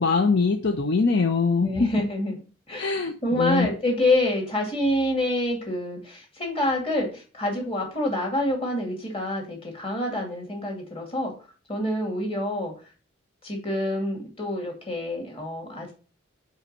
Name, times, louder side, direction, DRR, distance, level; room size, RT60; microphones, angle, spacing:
voice 1, 0.0-1.9 2.8-3.7, left 4 dB, 55° left, 5 dB, 0.7 m, -23 dB
voice 2, 1.6-2.4 2.7-2.9 3.2-11.3 11.7-12.7 13.4-15.9, left 1 dB, 30° left, 0 dB, 2.3 m, -27 dB
5.6 x 5.3 x 6.0 m, 0.37 s
head